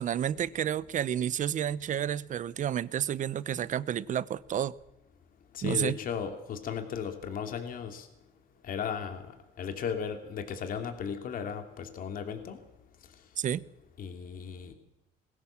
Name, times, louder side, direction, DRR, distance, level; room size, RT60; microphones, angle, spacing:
voice 1, 0.0-4.7 5.6-6.0 13.4-13.6, right 9 dB, 50° right, 0.9 m, -30 dB
voice 2, 5.5-8.1 8.6-9.2 9.6-12.6 14.0-14.7, left 7 dB, 55° left, 2.8 m, -35 dB
21.0 x 16.5 x 7.4 m
cardioid pair, 110°, 17 cm